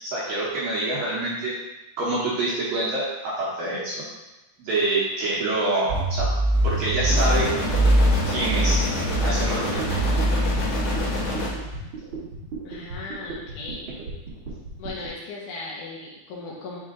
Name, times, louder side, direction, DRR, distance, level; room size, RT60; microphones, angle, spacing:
voice 1, 0.1-1.5 2.0-4.1 4.6-6.3 6.6-7.5 8.3-8.8 9.2-9.8, right 2 dB, 70° right, -7 dB, 2.3 m, -26 dB
sound 1, 5.9-11.8, right 1 dB, 85° right, 2.0 m, -23 dB
sound 2, 7.1-11.5, left 2 dB, 65° left, 1.9 m, -28 dB
sound 3, 9.2-15.1, right 5 dB, 40° right, 1.9 m, -36 dB
voice 2, 12.6-13.9 14.8-16.8, left 3 dB, 90° left, -5 dB, 1.7 m, -37 dB
6.3 x 4.2 x 3.6 m, 1.0 s
omnidirectional pair, 5.2 m